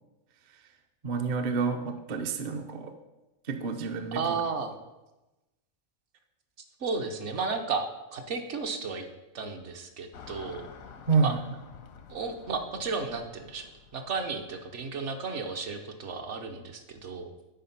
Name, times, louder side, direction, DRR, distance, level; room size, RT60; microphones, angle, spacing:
voice 1, 1.0-2.9 3.4-4.4 11.1-11.4, right 5 dB, 45° right, 6 dB, 0.6 m, -28 dB
voice 2, 4.1-4.8 6.8-7.8 8.1-9.1 9.3-10.7 11.2-11.3 12.1-17.3, right 4 dB, 65° right, 5 dB, 1.1 m, -33 dB
Car passing by / Traffic noise roadway noise, 10.1-14.8, left 6 dB, 90° left, 1.2 m, -50 dB
9.1 x 4.6 x 5.7 m, 1.0 s
omnidirectional pair, 1.4 m